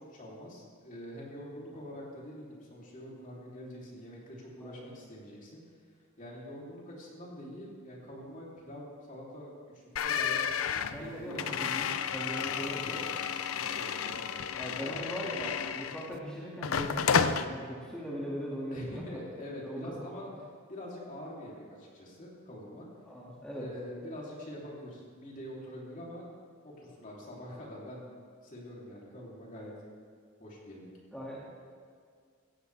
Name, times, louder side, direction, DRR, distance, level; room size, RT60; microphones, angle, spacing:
voice 1, 0.0-5.6 6.2-10.6 11.0-11.5 12.4-13.1 13.5-14.4 14.8-15.0 18.7-20.3 20.7-22.9 23.5-26.3 26.6-28.1 28.4-29.7 30.4-30.9, equal, 40° left, -4 dB, 3.2 m, -45 dB
voice 2, 4.6-5.1 10.9-13.0 14.5-19.0 19.6-20.4 23.1-23.7 31.1-31.4, equal, 5° left, -6 dB, 2.2 m, -40 dB
sound 1, 10.0-16.2 16.6-17.5, left 7 dB, 85° left, 0.6 m, -31 dB
16.0 x 15.0 x 3.4 m, 2.1 s
head